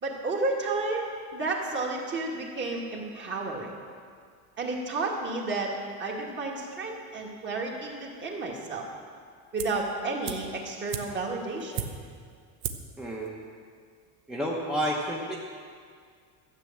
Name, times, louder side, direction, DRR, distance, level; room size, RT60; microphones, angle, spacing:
voice 1, 0.0-3.7 4.6-5.7 6.0-8.8 9.5-11.8, right 3 dB, 30° right, -1 dB, 2.1 m, -31 dB
sound 1, 9.6-9.9 10.2-12.2 12.6-13.0 13.3-13.4, right 8 dB, 90° right, 1.2 m, -36 dB
voice 2, 13.0-13.4 14.3-15.4, equal, ahead, -4 dB, 1.0 m, -30 dB
13.0 x 8.4 x 7.4 m, 2.1 s
cardioid pair, 150°, 38 cm